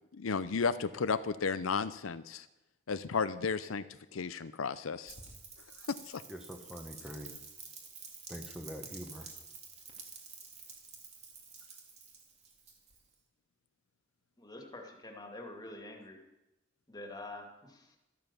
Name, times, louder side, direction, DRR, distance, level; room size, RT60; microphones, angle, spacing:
voice 1, 0.1-2.4 2.9-3.8 4.1-5.1 5.9-6.2, left 5 dB, 75° left, 13 dB, 0.6 m, -33 dB
Rain, 5.1-13.1, right 5 dB, 35° right, 2.7 m, -50 dB
voice 2, 6.3-7.3 8.3-9.3, equal, 5° right, 4 dB, 1.4 m, -44 dB
voice 3, 14.4-16.3 16.9-18.0, left 2 dB, 20° left, 2 dB, 2.4 m, -46 dB
13.0 x 12.5 x 7.0 m, 0.97 s
head